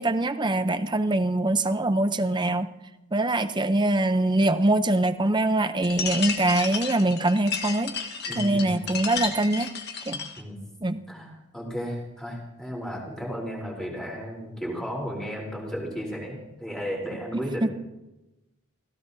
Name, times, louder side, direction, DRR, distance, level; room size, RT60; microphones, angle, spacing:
voice 1, 0.0-2.7 3.1-7.9 8.4-9.7 10.1-10.2 10.8-11.0 17.6-17.7, right 2 dB, 20° right, 10 dB, 0.6 m, -23 dB
sound 1, 5.8-10.4, left 6 dB, 50° left, 1.4 m, -32 dB
voice 2, 8.3-8.7 10.4-10.7 11.1-17.7, equal, 5° left, -3 dB, 3.6 m, -34 dB
29.0 x 16.5 x 2.7 m, 1.0 s
head